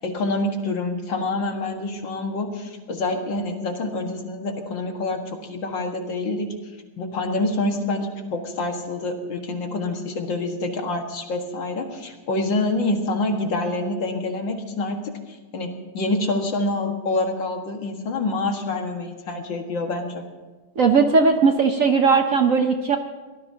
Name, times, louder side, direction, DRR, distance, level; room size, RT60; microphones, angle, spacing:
voice 1, 0.0-6.5 7.0-20.2, left 2 dB, 65° left, 3 dB, 2.4 m, -27 dB
voice 2, 20.8-23.0, right 5 dB, 55° right, 5 dB, 1.0 m, -18 dB
24.0 x 17.5 x 2.9 m, 1.2 s
omnidirectional pair, 2.2 m